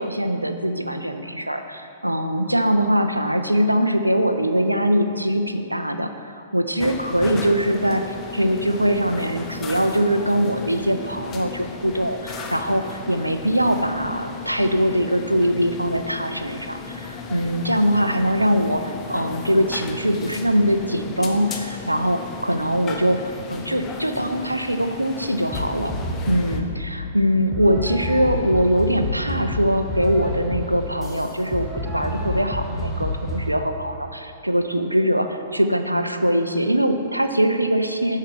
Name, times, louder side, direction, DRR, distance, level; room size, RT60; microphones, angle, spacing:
voice 1, 0.0-25.9 26.3-38.2, equal, 90° right, 7 dB, 0.5 m, -22 dB
sound 1, 6.8-26.6, left 4 dB, 20° left, 0.7 m, -35 dB
sound 2, 25.5-26.8 27.5-33.5, left 1 dB, 5° left, 1.2 m, -29 dB
8.2 x 5.7 x 4.7 m, 2.6 s
figure-of-eight pair, 110°, 0 cm